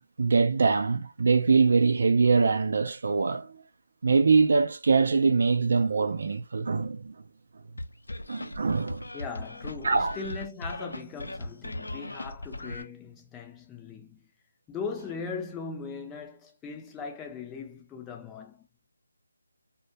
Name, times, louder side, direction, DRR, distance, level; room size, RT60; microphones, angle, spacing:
voice 1, 0.2-3.6 4.0-7.1 8.3-9.0 9.8-10.2, right 4 dB, 55° right, 0.4 m, -23 dB
sound 1, 7.8-12.8, left 1 dB, 80° left, 0.5 m, -38 dB
voice 2, 9.1-14.3 14.7-18.9, left 5 dB, 10° left, 0.4 m, -39 dB
2.1 x 2.1 x 2.8 m
figure-of-eight pair, 160°, 0 cm